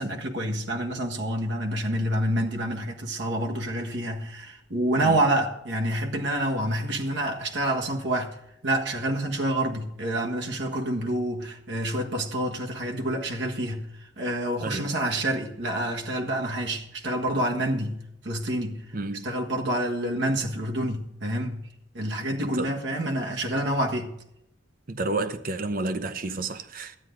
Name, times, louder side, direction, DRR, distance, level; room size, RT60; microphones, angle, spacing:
voice 1, 0.0-8.4 8.6-18.8 19.2-21.6 21.9-24.2, right 1 dB, 70° right, 1.6 m, -28 dB
voice 2, 18.9-19.2 22.4-22.8 24.9-27.0, right 2 dB, 50° right, 0.8 m, -31 dB
12.5 x 9.5 x 3.8 m
head